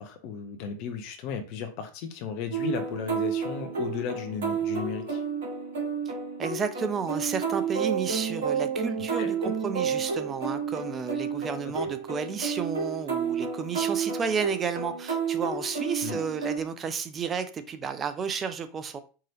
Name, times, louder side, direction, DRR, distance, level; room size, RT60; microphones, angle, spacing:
voice 1, 0.0-5.2 9.2-9.3 11.6-11.9 16.0-16.2, left 6 dB, 45° left, 0.7 m, -35 dB
sound 1, 2.5-16.6, right 6 dB, 60° right, 2.1 m, -31 dB
voice 2, 6.4-19.0, right 6 dB, 25° right, 0.4 m, -32 dB
4.6 x 2.9 x 2.9 m
figure-of-eight pair, 85°, 0 cm